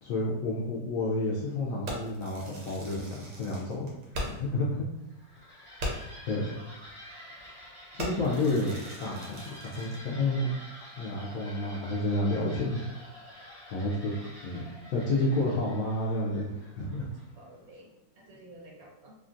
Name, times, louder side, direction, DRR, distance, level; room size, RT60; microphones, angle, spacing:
voice 1, 0.0-3.9 4.4-4.8 6.3-6.5 7.9-10.5 11.0-12.8 13.7-14.2 14.4-17.1, left 2 dB, 70° left, -4 dB, 0.8 m, -30 dB
Fireworks, 1.9-4.6 4.9-5.0 5.4-5.5 5.8-6.2 6.8-7.0 7.4-7.6 8.0-10.1, equal, 85° right, 1.5 m, -39 dB
sound 1, 5.0-17.5, left 1 dB, 25° right, 0.5 m, -48 dB
voice 2, 17.0-19.1, right 1 dB, 65° right, -2 dB, 1.0 m, -53 dB
3.5 x 2.3 x 2.5 m, 0.96 s
omnidirectional pair, 1.9 m